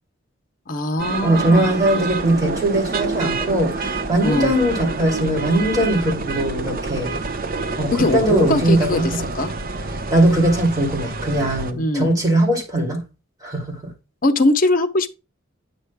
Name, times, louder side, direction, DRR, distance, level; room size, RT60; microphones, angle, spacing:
voice 1, 0.7-1.7 4.2-4.5 7.9-9.0 9.3-9.5 11.8-12.1 14.2-15.1, left 2 dB, 45° left, 0.9 m, -20 dB
sound 1, 1.0-11.7, right 3 dB, 45° right, 0.8 m, -27 dB
voice 2, 1.2-7.2 7.8-9.3 10.1-13.0 13.4-13.9, right 1 dB, 20° right, 2.6 m, -20 dB
9.2 x 6.3 x 2.2 m
head